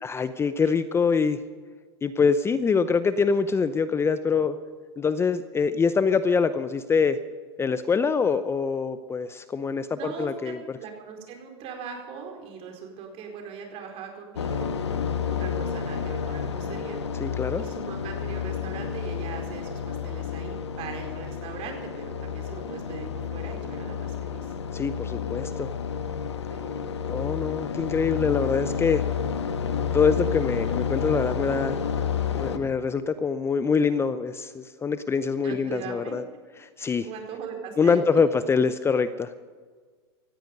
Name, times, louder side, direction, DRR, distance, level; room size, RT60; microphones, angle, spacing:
voice 1, 0.0-1.4 2.0-4.6 5.0-7.2 7.6-10.6 17.2-17.6 24.7-25.7 27.1-29.0 29.7-31.8 32.3-36.2 36.6-37.1 37.8-39.3, left 5 dB, 20° left, 13 dB, 0.7 m, -24 dB
voice 2, 9.9-17.0 17.6-24.5 26.5-26.8 35.4-36.2 37.0-38.0, right 6 dB, 45° right, 2 dB, 4.5 m, -40 dB
sound 1, 14.4-32.6, left 7 dB, 85° left, 1.3 m, -30 dB
18.0 x 14.5 x 5.4 m, 1.5 s
hypercardioid pair, 100°, 14 cm